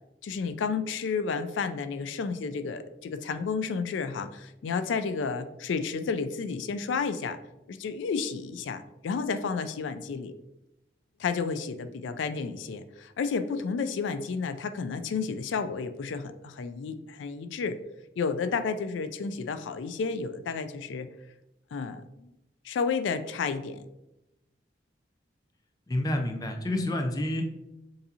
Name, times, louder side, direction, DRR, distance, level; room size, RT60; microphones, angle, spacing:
voice 1, 0.2-7.4 7.7-10.3 11.2-17.8 18.2-21.1 21.7-22.3 22.6-23.8 26.7-26.9, left 5 dB, 85° left, 11 dB, 0.3 m, -31 dB
voice 2, 25.9-27.5, left 1 dB, 20° left, 4 dB, 0.4 m, -29 dB
6.7 x 2.6 x 2.7 m, 0.90 s
head